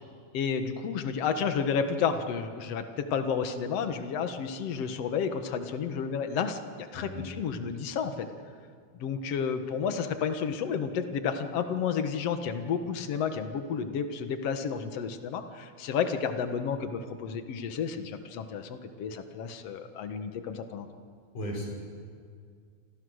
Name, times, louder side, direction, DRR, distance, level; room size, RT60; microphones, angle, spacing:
voice 1, 0.3-8.3 9.0-20.9, left 6 dB, 55° left, 7 dB, 2.4 m, -31 dB
voice 2, 6.9-7.3 21.3-21.6, left 1 dB, 85° left, -2 dB, 8.0 m, -35 dB
28.0 x 27.5 x 6.5 m, 2.1 s
omnidirectional pair, 3.5 m